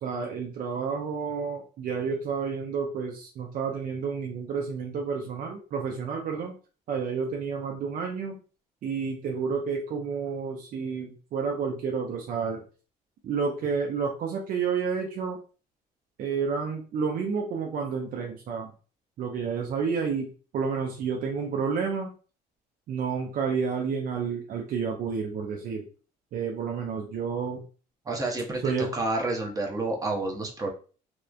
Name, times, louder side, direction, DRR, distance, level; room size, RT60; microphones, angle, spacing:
voice 1, 0.0-6.5 6.9-8.4 8.8-12.6 13.2-15.4 16.2-18.7 19.2-20.3 20.5-22.1 22.9-25.9 26.3-27.6 28.6-28.9, right 5 dB, 55° right, 2 dB, 0.5 m, -30 dB
voice 2, 28.1-30.7, right 2 dB, 20° right, 1 dB, 0.7 m, -29 dB
3.0 x 2.1 x 2.4 m, 0.37 s
cardioid pair, 110°, 17 cm